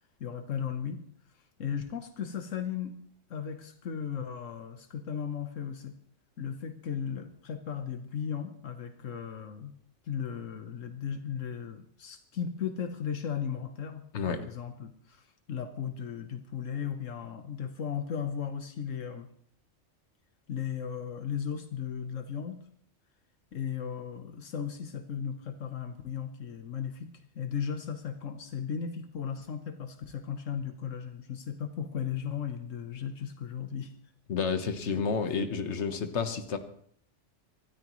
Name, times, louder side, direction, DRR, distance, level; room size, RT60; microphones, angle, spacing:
voice 1, 0.2-1.0 1.3-3.0 3.3-6.0 6.4-9.7 10.0-19.3 20.5-22.6 23.5-33.9, left 7 dB, 80° left, 7 dB, 1.3 m, -36 dB
voice 2, 14.1-14.4 34.3-36.6, left 5 dB, 65° left, 8 dB, 1.5 m, -30 dB
25.5 x 13.0 x 3.1 m, 0.62 s
omnidirectional pair, 1.3 m